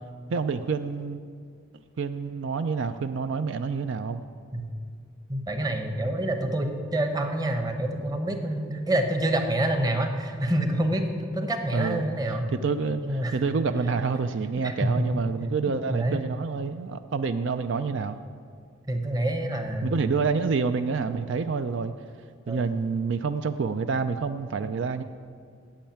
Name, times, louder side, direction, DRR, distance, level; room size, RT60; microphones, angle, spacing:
voice 1, 0.3-1.2 2.0-4.3 11.7-12.0 12.3-18.2 19.8-21.9 22.5-25.0, right 5 dB, 70° right, 10 dB, 0.4 m, -28 dB
voice 2, 5.3-12.5 13.0-13.4 14.6-15.1 15.9-16.2 18.9-19.9 22.5-22.6, right 1 dB, 20° right, 5 dB, 0.9 m, -27 dB
8.8 x 7.9 x 8.7 m, 2.1 s
head